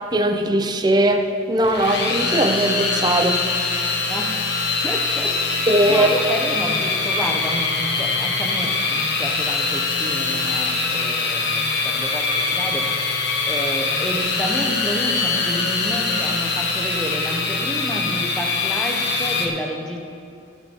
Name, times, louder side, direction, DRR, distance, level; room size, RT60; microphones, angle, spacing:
voice 1, 0.1-3.4 5.7-6.1, right 1 dB, 20° right, 6 dB, 0.7 m, -19 dB
sound 1, 1.6-19.5, left 4 dB, 60° left, 1.2 m, -23 dB
voice 2, 4.1-4.5 4.8-12.9 13.4-20.0, equal, 5° left, 1 dB, 1.0 m, -30 dB
18.0 x 6.3 x 4.6 m, 2.5 s
head